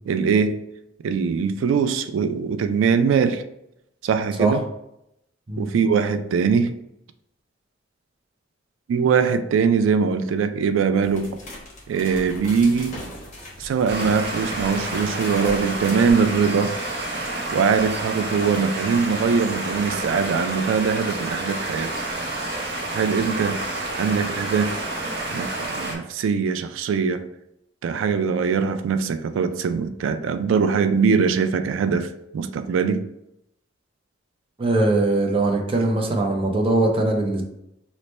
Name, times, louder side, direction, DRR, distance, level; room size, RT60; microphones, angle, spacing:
voice 1, 0.1-0.6 1.0-3.4 4.0-4.6 5.6-6.7 8.9-11.4 11.9-13.1 13.6-16.8 17.5-22.0 22.9-23.6 23.9-24.8 25.3-27.3 27.8-33.0, right 5 dB, 90° right, 0.3 m, -22 dB
sound 1, 11.0-16.1, left 1 dB, 45° left, 1.1 m, -39 dB
sound 2, 13.9-26.0, right 2 dB, 60° right, 0.7 m, -29 dB
voice 2, 34.6-37.4, right 2 dB, 30° right, 0.5 m, -21 dB
3.2 x 2.1 x 4.0 m
head